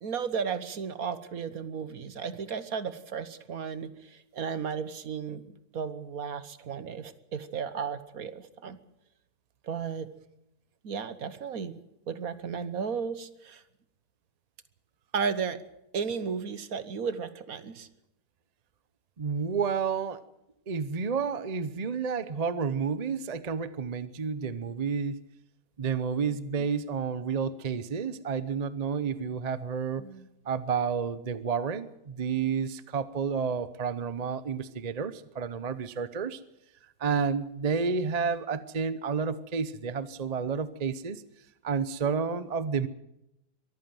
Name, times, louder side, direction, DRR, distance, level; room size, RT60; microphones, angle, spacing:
voice 1, 0.0-5.4 5.7-8.8 9.6-10.1 10.8-11.8 12.1-13.6 15.1-15.6 15.9-17.9 30.0-30.3, right 6 dB, 60° right, 13 dB, 1.5 m, -34 dB
voice 2, 19.2-20.2 20.7-25.2 25.8-30.0 30.5-36.4 37.0-41.2 41.6-42.9, right 6 dB, 35° right, 14 dB, 0.7 m, -30 dB
23.0 x 14.5 x 7.8 m, 0.83 s
omnidirectional pair, 1.8 m